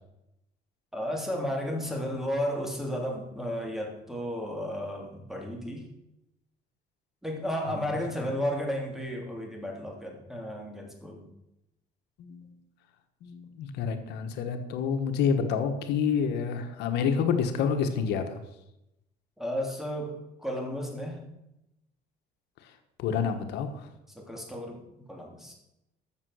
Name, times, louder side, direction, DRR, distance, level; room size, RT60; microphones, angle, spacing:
voice 1, 0.9-5.9 7.2-11.3 19.4-21.3 24.1-25.5, equal, ahead, 1 dB, 3.2 m, -33 dB
voice 2, 7.7-8.0 12.2-12.5 13.2-18.4 22.6-22.7 23.0-23.9, left 6 dB, 85° left, 6 dB, 1.4 m, -28 dB
13.5 x 7.1 x 6.5 m, 0.88 s
cardioid pair, 110°, 17 cm